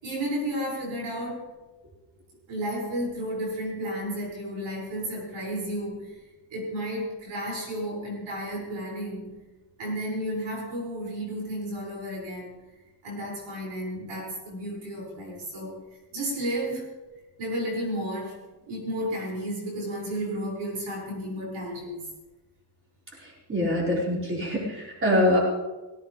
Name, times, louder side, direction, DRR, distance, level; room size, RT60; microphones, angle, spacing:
voice 1, 0.0-1.5 2.5-6.1 6.5-9.3 9.8-12.5 13.0-15.8 16.1-16.9 17.4-18.4 18.7-22.1, equal, 90° right, -3 dB, 7.1 m, -32 dB
voice 2, 23.5-25.4, left 1 dB, 25° right, -4 dB, 5.7 m, -24 dB
18.0 x 17.5 x 3.6 m, 1.1 s
cardioid pair, 125°, 46 cm